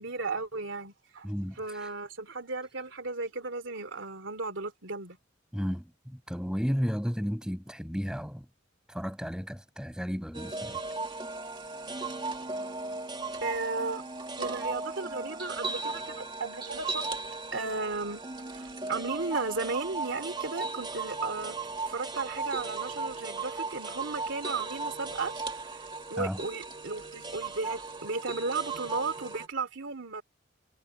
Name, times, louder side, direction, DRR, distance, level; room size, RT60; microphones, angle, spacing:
voice 1, 0.0-1.3 1.6-5.2 13.4-14.0 14.4-17.1 17.5-18.2 18.5-25.3 26.1-30.2, right 3 dB, 75° right, 2.7 m, -35 dB
voice 2, 1.2-1.9 5.5-8.5 8.9-10.8 26.2-26.4, equal, 5° right, 6.0 m, -33 dB
sound 1, 10.3-29.5, right 3 dB, 25° right, 1.9 m, -37 dB
head